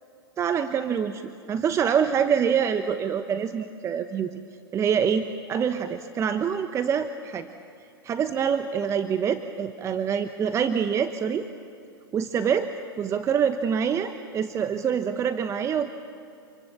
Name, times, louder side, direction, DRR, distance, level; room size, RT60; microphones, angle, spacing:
voice 1, 0.4-1.2 1.5-4.4 4.7-7.5 8.0-11.5 12.1-12.7 13.0-15.9, right 7 dB, 25° right, 9 dB, 0.9 m, -25 dB
27.5 x 24.0 x 7.0 m, 2.6 s
hypercardioid pair, 110°, 13 cm